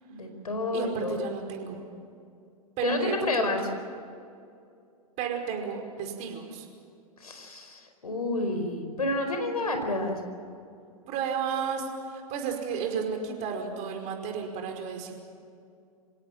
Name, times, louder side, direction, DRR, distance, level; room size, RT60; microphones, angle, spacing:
voice 1, 0.0-1.2 2.8-3.6 7.2-10.2, left 2 dB, 80° left, 5 dB, 4.8 m, -29 dB
voice 2, 0.7-1.8 2.8-3.5 5.2-6.7 11.1-15.1, right 6 dB, 40° right, 3 dB, 5.1 m, -33 dB
28.0 x 17.5 x 7.6 m, 2.4 s
figure-of-eight pair, 105°, 19 cm